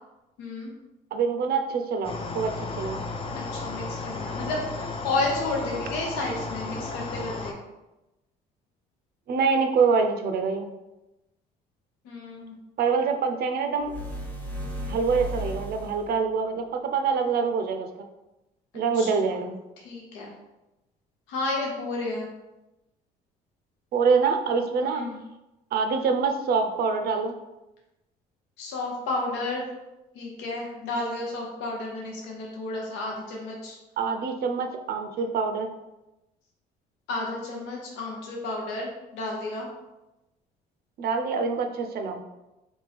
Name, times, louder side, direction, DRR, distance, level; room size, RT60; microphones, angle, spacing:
voice 1, 0.4-0.7 3.3-7.6 12.0-12.5 18.9-19.1 19.8-20.3 21.3-22.3 24.8-25.2 28.6-29.7 30.1-33.8 37.1-39.7, left 2 dB, 80° left, -1 dB, 0.7 m, -32 dB
voice 2, 1.1-3.1 9.3-10.7 12.8-13.9 14.9-17.9 18.7-19.6 23.9-25.0 25.7-27.3 34.0-35.8 41.0-42.2, right 5 dB, 60° right, 5 dB, 0.5 m, -25 dB
sound 1, 2.0-7.5, left 3 dB, 30° left, 0.5 m, -34 dB
sound 2, 13.8-16.2, equal, 10° left, 0.9 m, -35 dB
3.5 x 2.7 x 3.3 m, 0.99 s
supercardioid pair, 70°, 18 cm